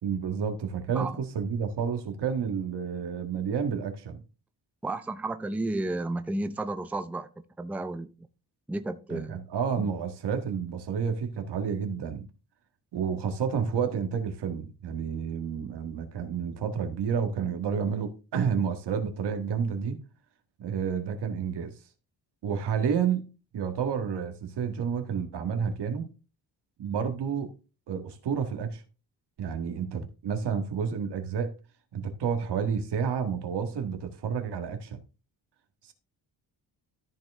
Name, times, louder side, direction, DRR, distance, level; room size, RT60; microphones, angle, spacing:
voice 1, 0.0-4.2 9.1-12.3 12.9-20.0 20.6-21.7 22.4-23.2 23.5-26.1 26.8-27.5 27.9-28.8 29.4-31.6 31.9-35.0 35.8-35.9, right 7 dB, 80° right, 1.8 m, -30 dB
voice 2, 4.8-7.3 7.6-8.3 8.7-9.4 9.8-9.9, right 2 dB, 5° right, 0.5 m, -32 dB
13.5 x 4.5 x 3.6 m
cardioid pair, 135°, 41 cm